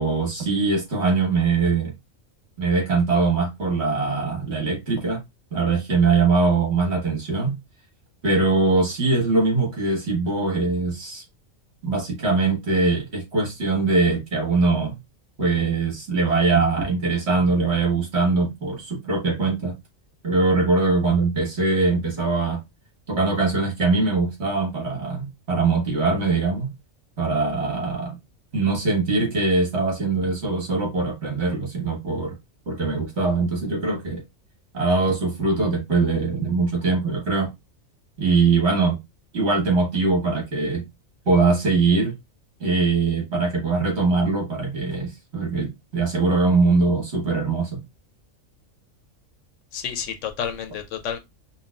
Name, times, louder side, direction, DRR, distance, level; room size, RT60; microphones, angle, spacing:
voice 1, 0.0-1.9 2.6-5.2 5.5-7.6 8.2-11.2 11.8-14.9 15.4-19.7 20.2-22.6 23.1-26.7 27.2-28.2 28.5-32.3 32.7-34.2 34.7-37.5 38.2-39.0 39.3-40.9 41.3-42.1 42.6-47.8, right 3 dB, 55° right, 1.7 m, -22 dB
voice 2, 49.7-51.2, left 8 dB, 75° left, 0.9 m, -30 dB
5.3 x 2.2 x 2.4 m
omnidirectional pair, 1.4 m